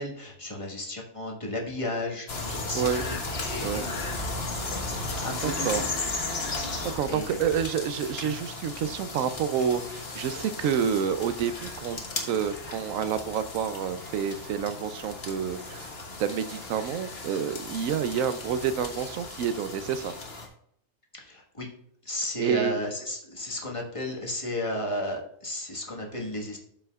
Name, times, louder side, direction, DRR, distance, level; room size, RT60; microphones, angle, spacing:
voice 1, 0.0-3.9 5.2-5.9 6.5-7.4 8.2-8.3 21.1-21.7 22.0-26.6, left 1 dB, 25° left, -1 dB, 1.5 m, -34 dB
sound 1, 2.3-20.5, left 2 dB, 50° left, 1.5 m, -35 dB
voice 2, 5.4-5.8 6.9-12.0 12.3-15.9 16.2-20.1 22.4-22.8, right 8 dB, 85° right, 12 dB, 1.0 m, -28 dB
12.5 x 5.5 x 2.3 m, 0.69 s
omnidirectional pair, 1.4 m